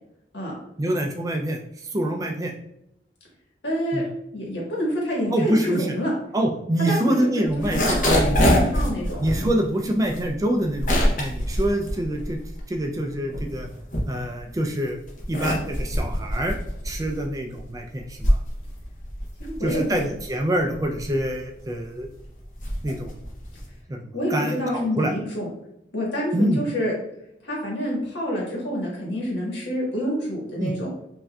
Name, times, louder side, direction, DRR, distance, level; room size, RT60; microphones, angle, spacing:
voice 1, 0.8-2.5 3.9-4.0 5.3-5.9 6.3-8.9 9.2-12.4 12.7-13.7 14.1-15.0 15.3-16.6 16.8-18.4 19.6-22.1 22.8-23.1 23.9-24.0 24.3-25.1 26.3-26.6 30.6-30.7, right 1 dB, 20° right, 3 dB, 0.3 m, -26 dB
voice 2, 3.6-4.0 4.3-6.1 6.9-9.2 19.4-20.1 24.1-25.5 25.9-26.9 27.4-30.9, equal, 80° left, -3 dB, 1.4 m, -27 dB
sound 1, 7.5-12.8 13.1-14.6 15.0-23.8, equal, 45° left, 0.8 m, -25 dB
5.6 x 2.6 x 2.3 m, 0.79 s
head